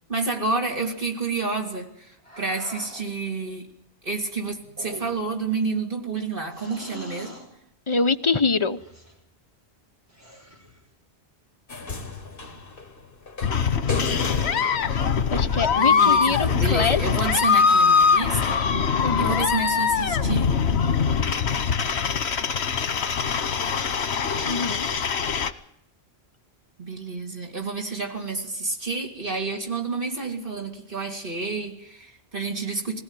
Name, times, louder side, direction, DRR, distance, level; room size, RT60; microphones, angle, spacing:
voice 1, 0.1-3.7 4.0-7.4 15.7-18.6 19.1-20.5 26.8-33.0, right 3 dB, 55° right, 2 dB, 3.2 m, -29 dB
sound 1, 2.2-3.1 4.6-5.4 6.5-7.5 8.8-9.2 10.1-10.8, right 1 dB, 15° right, 5.1 m, -43 dB
voice 2, 7.9-8.8 15.3-17.0 19.0-19.5 24.4-24.9, left 4 dB, 30° left, 9 dB, 0.9 m, -24 dB
sound 2, 11.7-16.1 17.2-17.3, left 3 dB, 60° left, 2.0 m, -34 dB
sound 3, 13.4-25.5, left 6 dB, 85° left, 1.3 m, -22 dB
21.0 x 17.5 x 9.1 m, 0.75 s
omnidirectional pair, 1.1 m